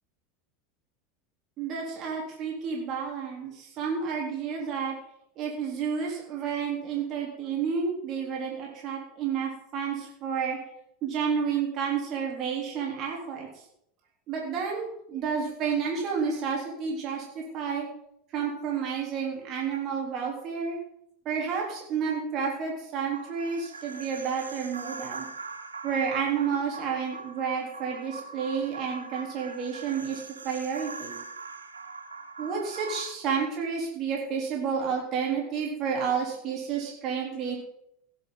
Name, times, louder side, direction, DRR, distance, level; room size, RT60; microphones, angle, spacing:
voice 1, 1.6-4.9 5.4-10.6 11.0-13.5 14.3-17.9 18.3-20.8 21.3-25.3 25.8-31.2 32.4-37.6, right 6 dB, 45° right, -1 dB, 3.8 m, -30 dB
sound 1, 23.1-33.1, right 4 dB, 85° right, 0.9 m, -42 dB
16.5 x 10.5 x 4.1 m, 0.77 s
figure-of-eight pair, 80°, 0 cm